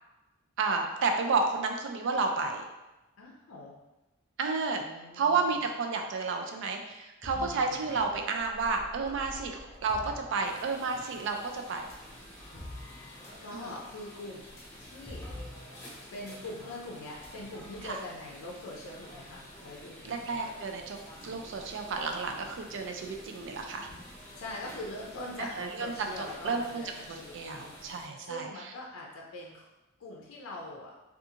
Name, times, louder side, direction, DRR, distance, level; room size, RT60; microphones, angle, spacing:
voice 1, 0.6-2.7 4.4-4.9 5.1-11.9 13.5-13.7 17.8-18.0 20.0-21.0 21.2-23.9 25.4-26.8 27.1-28.5, right 4 dB, 65° right, 4 dB, 0.4 m, -31 dB
voice 2, 3.2-3.7 4.8-5.6 7.3-7.8 12.5-12.6 13.4-14.4 14.8-15.3 16.1-20.3 24.3-29.7 30.0-30.9, left 1 dB, 75° left, -2 dB, 0.5 m, -43 dB
sound 1, 7.2-11.1 11.7-16.0 16.2-16.4 17.0-17.9, left 1 dB, 15° left, 0.5 m, -47 dB
sound 2, 10.4-28.1, equal, 35° left, 1.0 m, -50 dB
2.5 x 2.4 x 2.7 m, 1.0 s
head